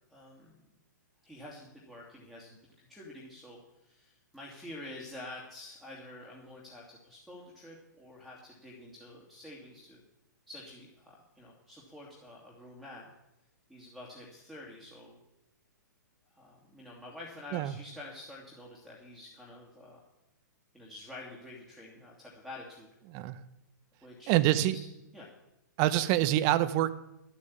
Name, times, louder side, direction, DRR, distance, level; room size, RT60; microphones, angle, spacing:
voice 1, 0.1-0.6 1.2-2.6 2.9-10.0 10.5-13.1 13.7-15.2 16.3-20.0 20.7-22.9 24.0-24.8 25.1-25.3, left 2 dB, ahead, -6 dB, 2.5 m, -48 dB
voice 2, 23.1-23.4 24.3-24.8 25.8-26.9, right 14 dB, 35° right, 14 dB, 0.8 m, -26 dB
12.0 x 8.5 x 8.6 m, 0.90 s
figure-of-eight pair, 120°, 10 cm